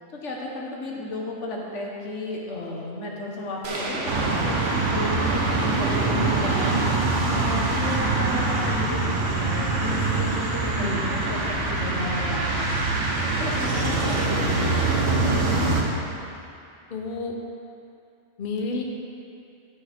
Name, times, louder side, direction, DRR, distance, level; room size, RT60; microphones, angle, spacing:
voice 1, 0.1-6.8 7.3-14.9, left 2 dB, 85° left, -2 dB, 1.6 m, -34 dB
sound 1, 3.6-5.6, right 2 dB, 65° right, 1.2 m, -34 dB
sound 2, 4.1-15.8, right 3 dB, 90° right, 1.4 m, -24 dB
voice 2, 10.8-11.1 16.9-17.3 18.4-18.8, left 4 dB, 50° left, 1 dB, 0.9 m, -30 dB
12.5 x 6.9 x 3.5 m, 2.6 s
omnidirectional pair, 1.2 m